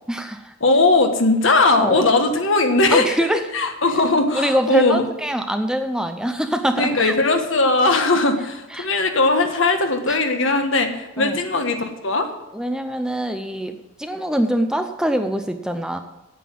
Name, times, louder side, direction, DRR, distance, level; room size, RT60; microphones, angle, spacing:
voice 1, 0.1-0.5 1.8-2.1 2.9-3.4 4.3-7.1 8.7-8.9 10.1-10.2 11.2-11.4 12.5-16.0, equal, 5° right, 7 dB, 0.6 m, -24 dB
voice 2, 0.6-3.2 3.5-5.0 6.8-12.3, left 3 dB, 65° left, 6 dB, 1.4 m, -19 dB
9.2 x 8.1 x 7.7 m, 0.93 s
head